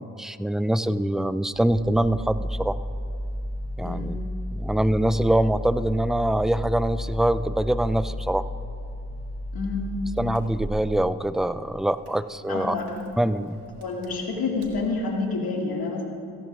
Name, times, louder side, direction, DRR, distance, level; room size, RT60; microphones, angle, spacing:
voice 1, 0.0-2.8 3.8-4.2 4.6-8.4 10.2-12.8 13.2-13.6, right 1 dB, ahead, 13 dB, 0.3 m, -24 dB
Engine starting, 1.5-14.9, left 1 dB, 85° right, 1.3 m, -33 dB
voice 2, 3.8-4.2 9.5-10.0 12.5-12.9 13.8-16.0, left 3 dB, 65° left, 0 dB, 2.2 m, -28 dB
17.0 x 12.0 x 2.5 m, 2.4 s
supercardioid pair, 45°, 39 cm